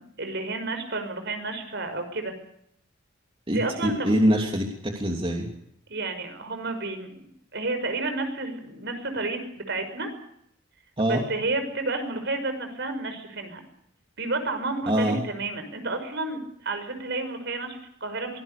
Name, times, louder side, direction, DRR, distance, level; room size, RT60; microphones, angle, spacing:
voice 1, 0.0-2.3 3.5-4.1 5.9-10.1 11.0-13.6 14.2-18.4, right 2 dB, 60° right, 8 dB, 6.0 m, -31 dB
voice 2, 3.5-5.5 11.0-11.2 14.9-15.2, equal, 25° right, 2 dB, 3.1 m, -24 dB
24.5 x 20.0 x 6.9 m, 0.72 s
head